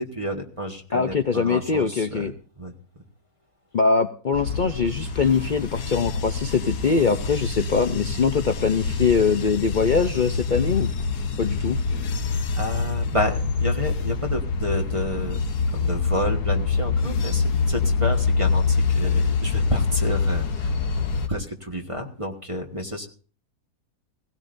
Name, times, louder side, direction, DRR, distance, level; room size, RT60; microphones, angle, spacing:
voice 1, 0.0-2.3 2.6-2.7 12.5-20.7 21.3-23.1, equal, 20° right, 4 dB, 1.4 m, -30 dB
voice 2, 0.9-2.3 3.7-10.9 11.4-11.8, left 5 dB, 55° left, 9 dB, 0.5 m, -22 dB
sound 1, 4.3-21.3, left 4 dB, 80° left, 1.6 m, -25 dB
18.0 x 17.0 x 2.6 m, 0.40 s
omnidirectional pair, 1.7 m